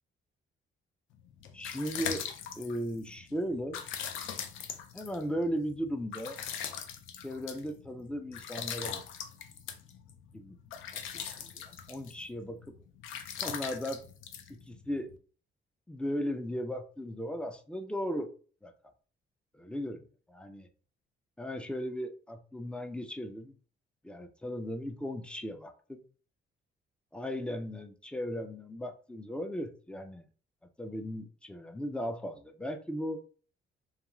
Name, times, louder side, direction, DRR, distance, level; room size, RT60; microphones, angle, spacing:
sound 1, 1.2-15.1, left 8 dB, 85° left, 0.5 m, -41 dB
voice 1, 1.5-2.3 2.6-3.8 4.9-6.4 7.2-9.0 10.3-10.6 10.9-12.7 13.4-14.0 14.5-15.1 15.9-18.3 18.6-18.7 19.5-20.0 20.3-20.7 21.4-23.5 24.0-26.0 27.1-30.2 30.8-33.2, equal, 5° left, 7 dB, 0.3 m, -37 dB
2.4 x 2.3 x 3.0 m, 0.40 s
cardioid pair, 90°, 20 cm